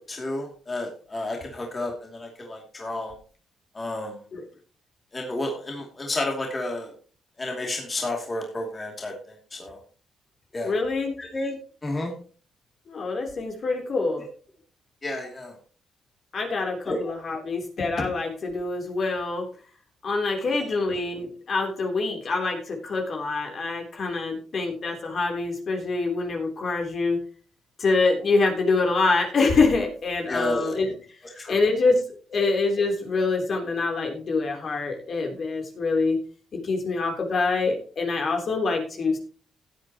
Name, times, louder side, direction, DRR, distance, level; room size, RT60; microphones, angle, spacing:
voice 1, 0.0-3.1 3.7-4.2 5.1-6.9 7.4-9.1 9.5-9.8 10.5-10.8 11.2-11.6 11.8-12.1 15.0-15.6 16.9-17.1 30.3-30.8 31.3-31.6, left 2 dB, 30° left, 1 dB, 2.6 m, -31 dB
voice 2, 10.6-11.1 12.9-14.2 16.3-19.4 20.0-27.2 27.8-30.9 31.5-32.0 32.3-36.2 36.5-39.2, left 3 dB, 55° left, 2 dB, 3.4 m, -25 dB
16.0 x 8.5 x 3.0 m, 0.39 s
cardioid pair, 85°, 0 cm